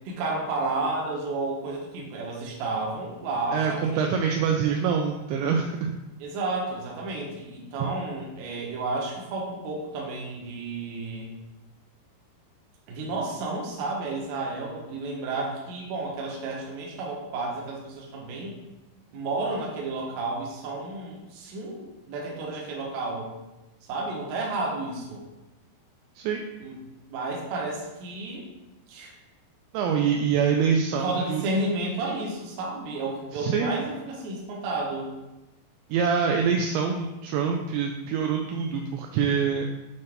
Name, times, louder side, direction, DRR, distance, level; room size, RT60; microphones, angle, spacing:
voice 1, 0.0-4.1 6.2-11.3 12.9-18.5 19.1-23.3 23.8-25.2 26.6-26.8 27.1-28.5 28.9-29.1 31.0-35.1, right 2 dB, 65° right, -2 dB, 2.5 m, -31 dB
voice 2, 3.5-5.9 26.2-26.4 29.7-31.4 33.3-33.8 35.9-39.7, right 6 dB, 85° right, 2 dB, 2.7 m, -25 dB
8.5 x 4.0 x 3.5 m, 1.0 s
omnidirectional pair, 5.3 m